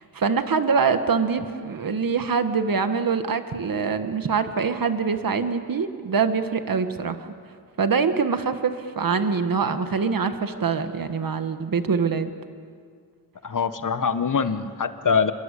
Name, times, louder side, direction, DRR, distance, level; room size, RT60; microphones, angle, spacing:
voice 1, 0.0-7.3 7.8-12.3, right 5 dB, 65° right, 8 dB, 1.6 m, -24 dB
voice 2, 13.4-15.3, left 6 dB, 55° left, 10 dB, 1.4 m, -23 dB
29.0 x 22.5 x 8.4 m, 2.1 s
wide cardioid pair, 95°, 36 cm